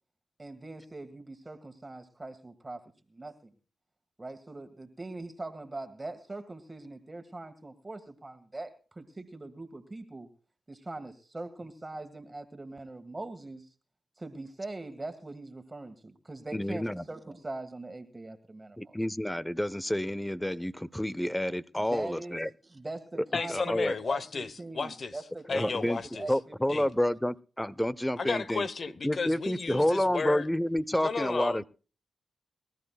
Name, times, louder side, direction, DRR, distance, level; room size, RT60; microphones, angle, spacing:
voice 1, 0.4-2.8 3.1-3.5 4.2-10.3 10.7-13.7 14.2-19.0 21.8-27.1, right 2 dB, 30° right, 1.7 m, -42 dB
voice 2, 16.5-17.0 18.8-22.5 23.5-23.9 25.5-26.0 26.3-28.7 29.0-31.6, left 1 dB, 10° left, 0.6 m, -29 dB
voice 3, 23.3-25.2 25.5-26.3 26.7-26.9 28.2-30.5 31.0-31.6, left 4 dB, 60° left, 1.0 m, -33 dB
23.5 x 13.5 x 2.3 m
cardioid pair, 50°, 0 cm